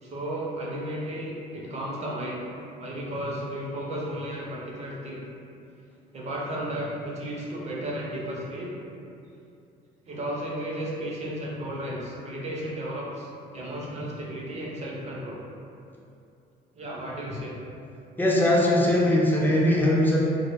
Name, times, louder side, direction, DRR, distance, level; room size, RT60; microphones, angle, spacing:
voice 1, 0.0-2.4 2.8-5.2 6.1-8.7 10.0-15.4 16.7-17.6, right 1 dB, 40° right, -4 dB, 0.5 m, -34 dB
voice 2, 18.2-20.2, left 1 dB, 10° left, -5 dB, 0.4 m, -20 dB
2.1 x 2.1 x 3.3 m, 2.6 s
cardioid pair, 110°, 17 cm